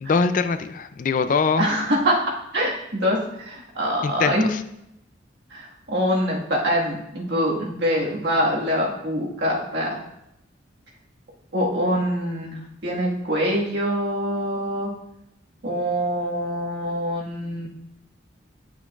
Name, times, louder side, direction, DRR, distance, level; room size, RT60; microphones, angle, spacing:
voice 1, 0.0-1.7 4.0-4.6, left 4 dB, 40° left, 11 dB, 0.3 m, -23 dB
voice 2, 1.6-2.2 2.5-4.5 5.5-10.0 11.5-14.9 15.6-17.7, equal, 60° right, -3 dB, 1.6 m, -24 dB
10.5 x 6.0 x 2.3 m, 0.82 s
head